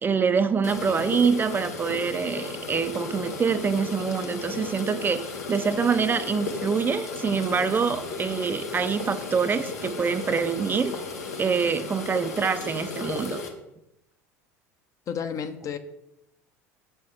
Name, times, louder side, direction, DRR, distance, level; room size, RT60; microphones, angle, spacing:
voice 1, 0.0-5.2 5.5-10.9 11.4-13.4, right 6 dB, 25° right, 10 dB, 0.4 m, -25 dB
sound 1, 0.6-13.5, left 4 dB, 85° left, 0.9 m, -35 dB
voice 2, 15.1-15.8, left 7 dB, 40° left, 9 dB, 0.6 m, -31 dB
6.7 x 5.6 x 3.2 m, 0.87 s
hypercardioid pair, 75°, 8 cm